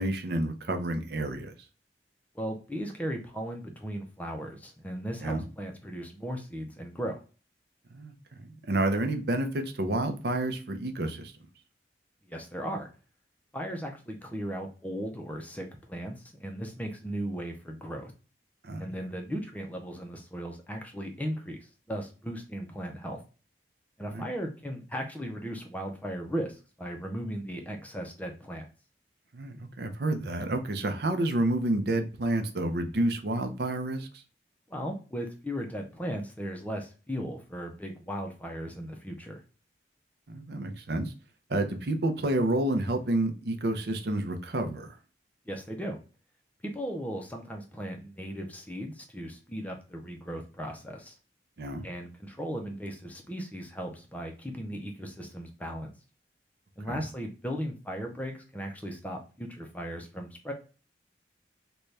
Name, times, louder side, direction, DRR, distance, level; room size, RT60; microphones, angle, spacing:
voice 1, 0.0-1.5 5.2-5.4 7.9-8.1 8.4-11.3 18.6-18.9 24.1-24.3 29.3-34.1 40.3-41.1 41.5-44.9 51.6-51.9 56.9-57.0, right 1 dB, 60° right, 6 dB, 0.6 m, -29 dB
voice 2, 2.3-7.2 12.3-12.9 13.5-18.1 18.8-23.2 24.0-28.6 34.7-39.4 45.5-46.0 46.6-51.2 51.8-55.9 56.8-60.5, equal, 10° left, 2 dB, 0.5 m, -37 dB
4.0 x 2.3 x 3.2 m, 0.34 s
head